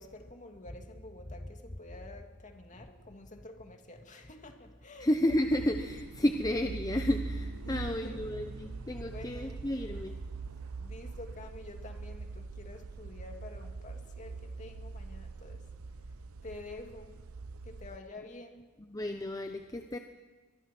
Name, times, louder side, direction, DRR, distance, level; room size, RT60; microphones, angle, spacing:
voice 1, 0.0-5.1 7.6-8.3 9.1-9.6 10.8-15.6 16.4-17.1 17.6-18.7, left 2 dB, 35° left, 4 dB, 2.4 m, -48 dB
voice 2, 5.0-10.2 18.8-20.0, left 1 dB, 15° left, 6 dB, 0.8 m, -31 dB
sound 1, 5.3-18.0, right 4 dB, 80° right, 0.7 m, -43 dB
23.0 x 23.0 x 6.1 m, 1.4 s
head